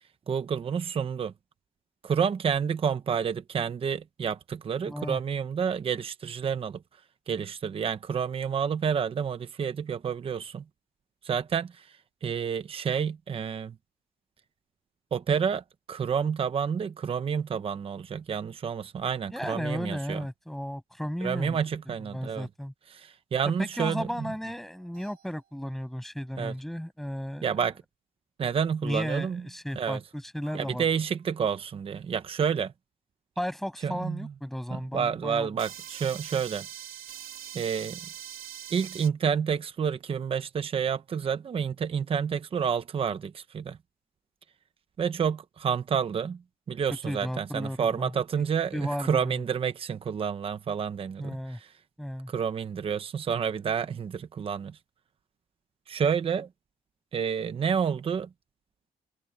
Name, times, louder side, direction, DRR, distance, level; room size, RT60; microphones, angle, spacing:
voice 1, 0.3-1.3 2.0-6.8 7.3-10.6 11.2-11.8 12.2-13.7 15.1-15.6 15.9-20.2 21.2-22.5 22.9-24.3 26.4-26.5 27.4-27.8 28.4-29.4 29.8-30.0 30.5-32.7 33.8-34.3 34.7-36.7 37.5-38.0 38.7-43.8 45.0-46.4 46.7-51.7 52.3-54.8 55.9-56.5 57.1-58.3, right 7 dB, 35° right, 0.9 m, -29 dB
voice 2, 4.9-5.2 19.3-21.6 22.0-22.7 23.6-27.6 28.8-31.0 33.4-35.5 47.1-48.1 48.7-49.4 51.2-51.6 52.0-52.3, equal, ahead, 7.0 m, -34 dB
sound 1, 24.8-25.4 28.9-29.3 29.7-29.9 30.4-30.7 35.6-39.1, right 11 dB, 75° right, 3.8 m, -43 dB
cardioid pair, 135°, 15 cm